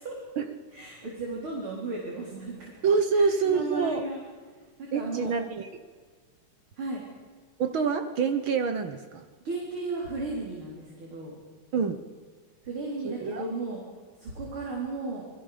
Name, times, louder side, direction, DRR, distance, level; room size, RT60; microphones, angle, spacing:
voice 1, 0.7-2.7 3.1-4.2 4.5-5.3 6.8-7.0 9.4-11.3 12.6-13.8 14.2-15.2, right 3 dB, 40° right, -3 dB, 4.7 m, -35 dB
voice 2, 2.8-4.0 4.9-5.7 7.6-9.2 11.7-12.0 13.2-13.5, right 5 dB, 55° right, 9 dB, 1.5 m, -26 dB
28.5 x 20.5 x 5.1 m, 1.5 s
omnidirectional pair, 3.6 m